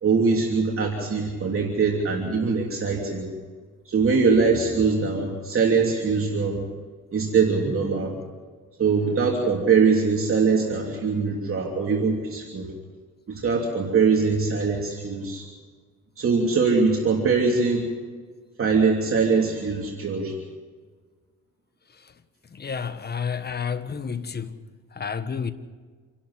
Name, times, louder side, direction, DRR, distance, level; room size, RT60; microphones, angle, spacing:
voice 1, 0.0-3.3 3.9-6.6 7.1-8.1 8.8-12.7 13.3-15.4 16.2-17.8 18.6-20.3, right 5 dB, 45° right, 3.1 m, -22 dB
voice 2, 22.5-25.5, left 6 dB, 35° left, 1.4 m, -31 dB
27.5 x 12.0 x 8.1 m
cardioid pair, 90°, 30 cm